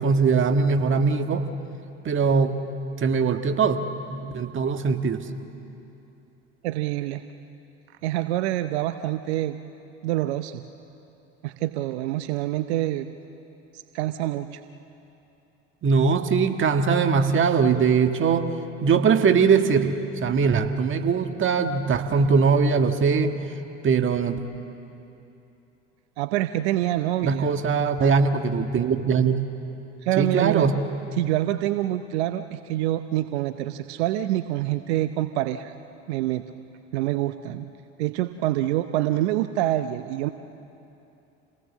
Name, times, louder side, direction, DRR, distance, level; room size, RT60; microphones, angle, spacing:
voice 1, 0.0-1.4 2.0-2.6 3.0-3.8 4.1-5.2 15.8-18.5 18.8-19.9 20.2-23.3 23.8-24.4 27.2-29.4 30.2-30.8, right 5 dB, 35° right, 6 dB, 1.7 m, -21 dB
voice 2, 6.6-7.2 8.0-9.6 10.0-10.6 11.4-13.1 13.9-14.6 26.2-27.5 30.0-30.7 31.2-35.7 36.1-36.4 36.9-37.7 38.0-40.3, right 14 dB, 75° right, 10 dB, 0.8 m, -26 dB
28.5 x 18.5 x 7.4 m, 2.9 s
hypercardioid pair, 75°, 33 cm